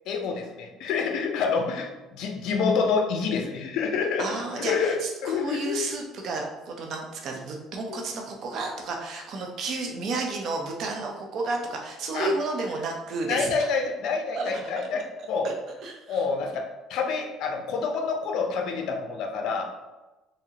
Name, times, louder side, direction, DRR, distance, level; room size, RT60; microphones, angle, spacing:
voice 1, 0.1-4.3 4.6-5.8 7.9-8.0 12.1-12.3 13.3-15.5 16.1-19.6, left 5 dB, 70° left, 3 dB, 0.5 m, -27 dB
voice 2, 4.2-13.7 14.4-14.5 15.4-15.5 15.8-16.2, right 3 dB, 55° right, 1 dB, 0.6 m, -32 dB
3.7 x 2.0 x 2.7 m, 1.1 s
cardioid pair, 120°, 0 cm